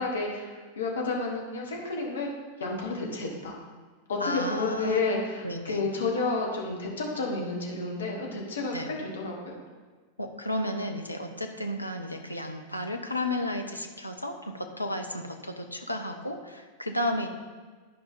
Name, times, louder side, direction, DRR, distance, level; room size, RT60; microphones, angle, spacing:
voice 1, 0.0-2.3 2.6-3.6 4.1-9.6, left 3 dB, 65° left, -1 dB, 1.6 m, -31 dB
voice 2, 4.2-5.0 5.4-5.8 8.7-8.9 10.2-17.3, left 1 dB, 85° left, 4 dB, 0.7 m, -33 dB
11.5 x 5.1 x 3.7 m, 1.4 s
figure-of-eight pair, 90°, 0 cm